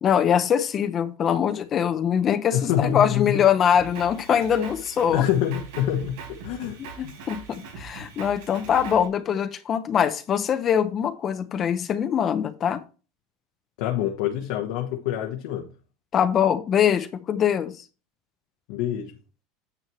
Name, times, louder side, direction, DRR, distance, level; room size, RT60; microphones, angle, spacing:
voice 1, 0.0-5.2 7.0-12.8 16.1-17.8, left 8 dB, 30° left, 0.8 m, -23 dB
voice 2, 2.5-3.4 5.1-7.1 13.8-15.7 18.7-19.2, left 11 dB, 70° left, 1.4 m, -26 dB
Drum kit, 3.7-9.1, right 5 dB, 80° right, 4.6 m, -41 dB
9.9 x 7.3 x 3.1 m
supercardioid pair, 145°, 0 cm